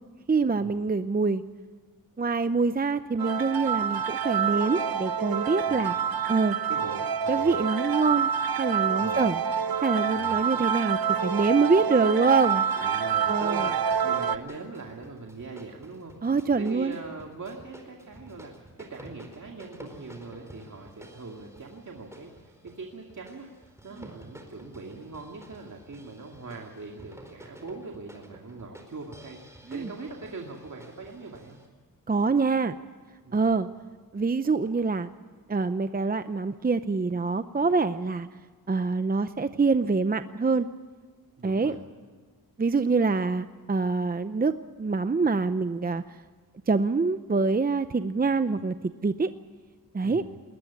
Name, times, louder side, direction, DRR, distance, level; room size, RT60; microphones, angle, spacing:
voice 1, 0.3-1.4 2.2-5.9 6.3-6.6 7.3-8.3 8.6-9.4 9.8-12.6 13.3-13.7 16.2-16.9 24.0-24.1 29.7-29.9 32.1-32.7 33.3-33.7 34.1-35.1 35.5-38.3 38.7-40.7 41.4-41.8 42.6-46.2 46.7-48.7 49.0-49.3 49.9-50.2, right 4 dB, 25° right, 11 dB, 0.6 m, -25 dB
sound 1, 3.2-14.4, right 7 dB, 75° right, 0.9 m, -27 dB
voice 2, 5.7-6.0 6.7-7.5 9.0-9.2 10.1-10.4 12.8-16.1 16.6-29.4 29.7-31.6 33.2-33.5 41.4-41.8 50.0-50.3, right 3 dB, 55° right, 1 dB, 2.4 m, -42 dB
sound 2, 13.1-31.7, right 1 dB, 10° right, 4.4 m, -50 dB
20.5 x 20.0 x 8.4 m, 1.5 s
wide cardioid pair, 115°, 36 cm